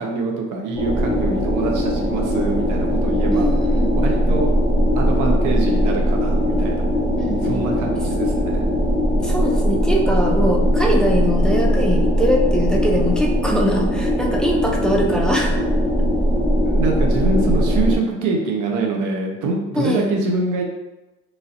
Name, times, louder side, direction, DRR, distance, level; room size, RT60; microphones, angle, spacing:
voice 1, 0.0-3.5 4.0-4.5 5.0-6.8 7.4-8.6 16.6-20.6, right 3 dB, 90° right, 1 dB, 0.6 m, -24 dB
sound 1, 0.8-18.0, equal, 15° right, 0.8 m, -19 dB
voice 2, 3.3-3.9 7.2-7.6 9.2-15.6 19.8-20.0, equal, 5° left, 0 dB, 0.4 m, -22 dB
3.1 x 2.5 x 2.7 m, 1.0 s
cardioid pair, 90°, 30 cm